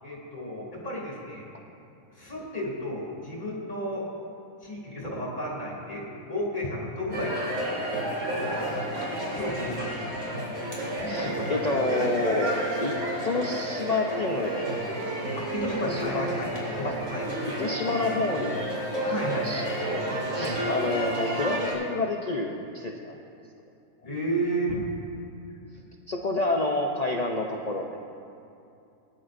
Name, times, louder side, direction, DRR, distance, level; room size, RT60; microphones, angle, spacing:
voice 1, 0.0-1.5 2.2-4.0 4.6-7.3 8.2-8.7 9.3-10.0 11.0-11.4 15.4-17.2 19.0-19.5 20.3-20.6 24.0-24.9, equal, 30° left, -4 dB, 2.8 m, -33 dB
sound 1, 7.1-21.7, right 1 dB, 65° right, 3.2 m, -31 dB
voice 2, 11.1-13.0 13.2-14.7 15.1-15.4 15.8-16.3 16.8-16.9 17.6-18.9 19.2-23.2 26.1-28.0, left 2 dB, 65° left, 1 dB, 0.4 m, -29 dB
19.5 x 10.5 x 2.6 m, 2.6 s
omnidirectional pair, 1.6 m